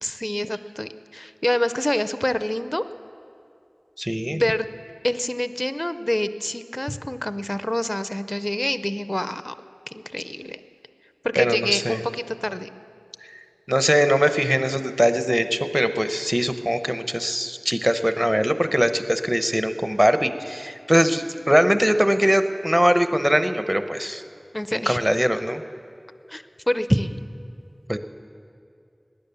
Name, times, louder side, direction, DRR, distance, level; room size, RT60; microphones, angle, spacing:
voice 1, 0.0-2.8 4.3-4.7 5.0-9.5 9.9-10.6 11.2-12.0 12.3-12.7 24.5-25.0 26.3-27.1, left 1 dB, 25° left, 12 dB, 0.5 m, -27 dB
voice 2, 4.0-4.4 11.4-12.0 13.7-24.2 24.7-25.6 27.9-28.0, equal, 10° right, 10 dB, 0.8 m, -21 dB
19.0 x 9.8 x 6.9 m, 2.5 s
wide cardioid pair, 45°, 0 cm